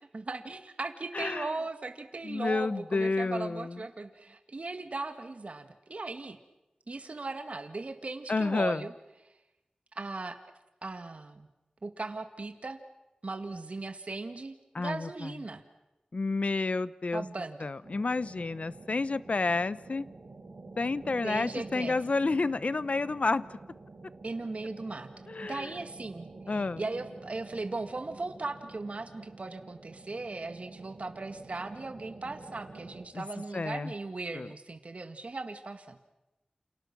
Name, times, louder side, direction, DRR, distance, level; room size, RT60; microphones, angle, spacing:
voice 1, 0.1-6.4 6.9-8.9 9.9-10.4 10.8-11.5 11.8-12.8 13.2-15.6 17.1-17.7 21.2-22.0 24.2-25.1 25.4-36.0, right 3 dB, 60° right, 7 dB, 2.0 m, -38 dB
voice 2, 1.1-1.5 2.2-3.8 8.3-8.8 14.7-15.3 16.1-17.2 17.6-20.1 20.8-23.4 25.3-25.7 26.5-26.8 33.1-33.2 33.5-33.9 34.3-34.5, left 3 dB, 65° left, 17 dB, 0.9 m, -30 dB
sound 1, 17.8-33.0, right 3 dB, 90° right, 5.5 m, -49 dB
29.5 x 28.5 x 6.1 m, 0.96 s
wide cardioid pair, 60°, 2 cm